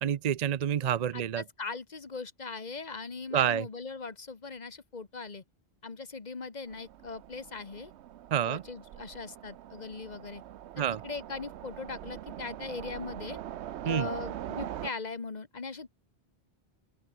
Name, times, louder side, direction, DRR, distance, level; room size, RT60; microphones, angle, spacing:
voice 1, 0.0-1.4 3.3-3.7 8.3-8.6 10.8-11.0 13.9-14.1, right 9 dB, 50° right, 0.5 m, -28 dB
voice 2, 1.1-5.4 5.8-7.9 8.4-10.4 10.8-13.4 13.8-15.9, left 4 dB, 40° left, 1.4 m, -40 dB
Train, 6.7-14.9, right 12 dB, 80° right, 0.9 m, -43 dB
open air
omnidirectional pair, 1.1 m